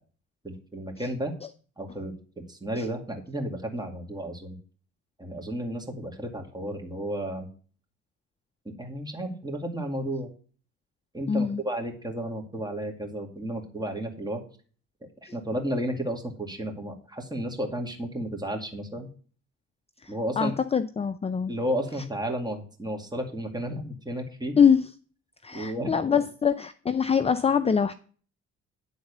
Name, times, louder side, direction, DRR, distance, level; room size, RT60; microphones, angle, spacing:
voice 1, 0.4-1.3 1.8-4.6 5.2-7.5 8.8-10.3 11.1-14.4 15.3-19.1 20.1-20.5 21.5-24.6 25.5-26.2, right 1 dB, 15° right, 2 dB, 2.2 m, -33 dB
voice 2, 11.3-11.6 20.0-21.5 24.6-24.9 25.4-27.9, left 7 dB, 20° left, 11 dB, 0.5 m, -24 dB
10.5 x 4.0 x 6.7 m, 0.41 s
cardioid pair, 90°, 30 cm